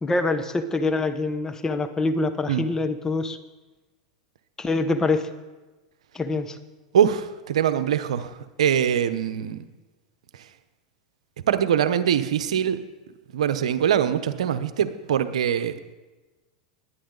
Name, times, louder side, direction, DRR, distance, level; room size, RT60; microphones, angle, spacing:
voice 1, 0.0-3.4 4.6-5.3 6.1-6.6, left 3 dB, 15° left, 9 dB, 1.2 m, -25 dB
voice 2, 6.9-9.7 10.3-10.5 11.5-12.8 13.3-15.9, right 9 dB, 80° right, 11 dB, 0.9 m, -23 dB
20.5 x 9.6 x 4.0 m, 1.2 s
hypercardioid pair, 110°, 3 cm